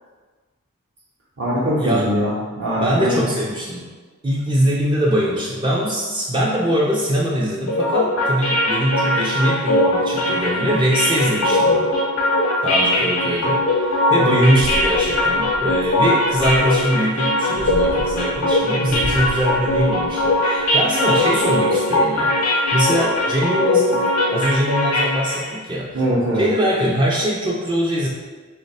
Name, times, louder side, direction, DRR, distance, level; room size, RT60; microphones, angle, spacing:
voice 1, 1.4-3.2 14.3-14.6 25.9-26.5, equal, 55° right, -9 dB, 0.7 m, -22 dB
voice 2, 2.8-3.8 4.2-11.9 12.6-24.0 24.3-26.0 26.3-28.1, equal, 20° right, -5 dB, 0.4 m, -22 dB
sound 1, 7.7-25.5, left 1 dB, 75° left, 0.6 m, -20 dB
sound 2, 14.5-16.9 17.5-20.6 21.0-21.6, equal, 85° right, 0.8 m, -32 dB
3.3 x 2.1 x 4.0 m, 1.4 s
head